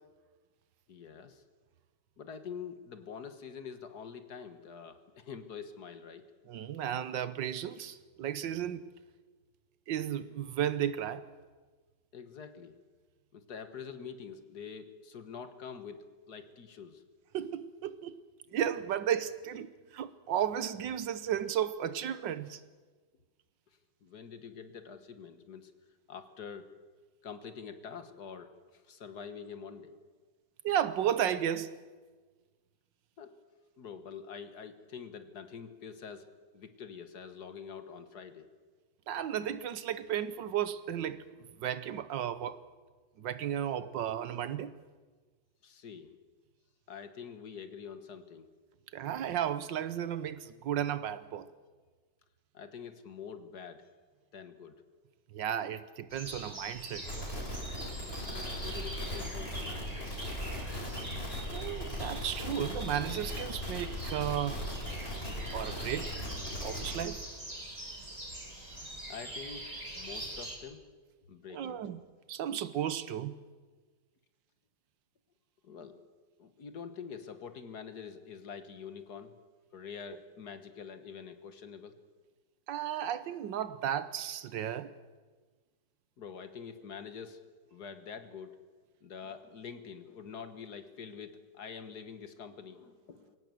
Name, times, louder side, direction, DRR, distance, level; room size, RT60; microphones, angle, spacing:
voice 1, 0.9-1.4 2.2-6.3 12.1-12.8 13.3-17.0 24.0-25.7 26.1-26.7 27.2-29.9 33.2-33.3 33.8-38.5 45.6-46.1 46.9-48.5 52.5-53.9 54.3-54.7 58.2-60.1 69.1-69.7 70.0-70.8 71.3-71.8 75.6-76.0 76.4-79.4 79.7-81.9 86.2-87.4 87.7-88.6 89.0-93.4, left 6 dB, 60° left, 1.8 m, -46 dB
voice 2, 6.5-8.9 9.9-11.2 17.3-18.2 18.5-22.6 30.6-31.7 39.1-41.2 41.6-42.6 43.2-44.7 48.9-51.5 55.3-57.5 61.5-64.6 65.5-66.1 66.6-67.2 71.5-72.0 72.3-73.3 82.7-84.9, right 10 dB, 75° right, 1.6 m, -34 dB
sound 1, 56.1-70.6, right 1 dB, 20° right, 3.1 m, -44 dB
sound 2, 57.0-67.0, left 1 dB, 30° left, 4.3 m, -39 dB
22.0 x 18.0 x 7.7 m
omnidirectional pair, 2.1 m